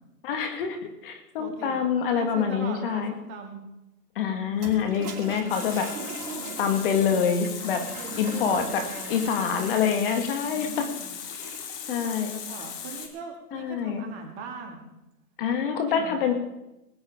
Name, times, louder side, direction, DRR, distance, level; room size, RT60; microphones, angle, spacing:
voice 1, 0.2-3.1 4.2-5.9 6.6-7.8 8.2-8.8 9.1-10.9 11.9-12.3 13.5-14.0 15.4-16.3, left 7 dB, 35° left, 6 dB, 1.8 m, -26 dB
voice 2, 1.4-1.8 2.1-3.6 6.3-6.9 7.8-9.3 10.4-11.1 11.8-14.9 15.9-16.3, right 5 dB, 25° right, 2 dB, 2.2 m, -41 dB
Toilet flush, 4.5-11.8, right 4 dB, 65° right, 3.1 m, -41 dB
Water tap faucet, 5.5-13.1, left 8 dB, 10° left, 0.6 m, -38 dB
19.5 x 9.4 x 4.9 m, 0.93 s
hypercardioid pair, 145°, 48 cm